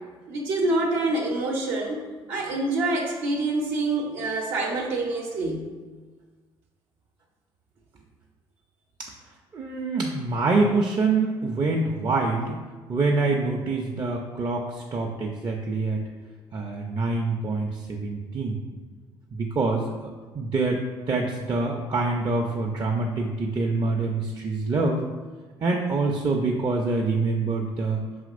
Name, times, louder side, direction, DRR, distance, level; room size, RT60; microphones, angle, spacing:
voice 1, 0.3-2.0 2.3-5.7, right 2 dB, 75° right, -2 dB, 0.7 m, -26 dB
voice 2, 9.5-12.5 12.9-16.0 16.5-18.6 19.4-25.0 25.6-28.0, right 3 dB, 35° right, 0 dB, 0.5 m, -25 dB
4.9 x 2.9 x 2.5 m, 1.4 s
hypercardioid pair, 55°, 12 cm